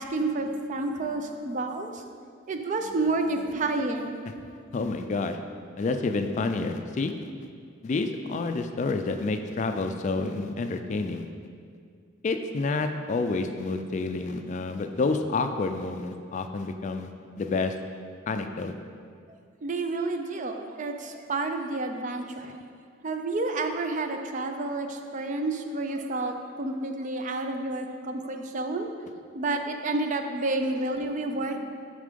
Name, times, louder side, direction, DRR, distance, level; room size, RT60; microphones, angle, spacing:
voice 1, 0.0-1.9 2.5-4.9 19.6-22.6 23.0-28.9 29.3-31.6, right 2 dB, 40° right, 5 dB, 0.4 m, -30 dB
voice 2, 4.7-5.4 5.8-7.1 7.8-11.3 12.2-17.1 17.4-17.7 18.3-18.7, left 3 dB, 35° left, 7 dB, 0.3 m, -29 dB
7.1 x 3.7 x 5.1 m, 2.2 s
head